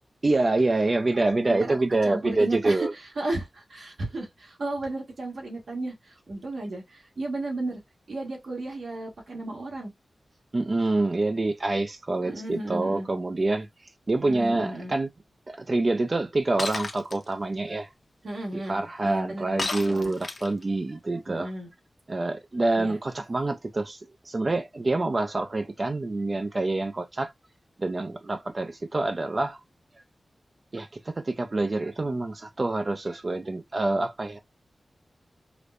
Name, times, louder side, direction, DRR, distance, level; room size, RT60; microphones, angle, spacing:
voice 1, 0.2-2.9 10.5-13.7 14.1-15.1 15.5-17.9 18.5-21.5 22.1-24.0 24.2-27.3 27.8-29.6 30.7-34.4, right 2 dB, 40° right, 0.4 m, -26 dB
voice 2, 2.0-7.8 8.1-9.9 12.2-13.1 14.2-14.9 18.2-20.1 21.3-21.7 22.8-23.0, right 2 dB, 80° right, 1.5 m, -34 dB
Shatter, 16.6-17.2 19.6-20.6, left 3 dB, 55° left, 0.8 m, -31 dB
4.9 x 2.1 x 2.4 m
wide cardioid pair, 85°, 0 cm